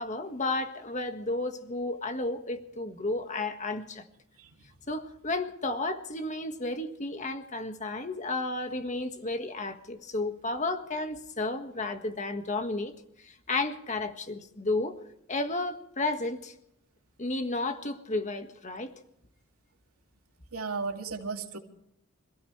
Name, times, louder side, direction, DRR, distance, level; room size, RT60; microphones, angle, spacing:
voice 1, 0.0-4.0 4.9-12.9 13.5-15.0 15.3-16.5 17.2-18.9, left 2 dB, 35° left, 1.6 m, -32 dB
voice 2, 20.5-21.6, right 4 dB, 85° right, 2.5 m, -34 dB
27.0 x 16.0 x 3.3 m
head